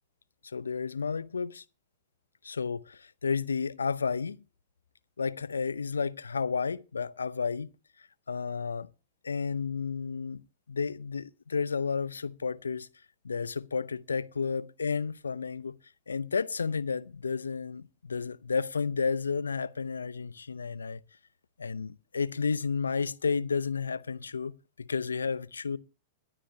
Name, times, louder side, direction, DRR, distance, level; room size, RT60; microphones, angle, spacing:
voice 1, 0.5-1.6 2.4-4.4 5.2-7.7 8.3-8.9 9.2-10.4 10.7-12.9 13.2-15.7 16.1-21.0 21.6-24.5 24.8-25.8, left 5 dB, 85° left, 0.6 m, -32 dB
22.0 x 10.0 x 2.8 m
figure-of-eight pair, 100°, 0 cm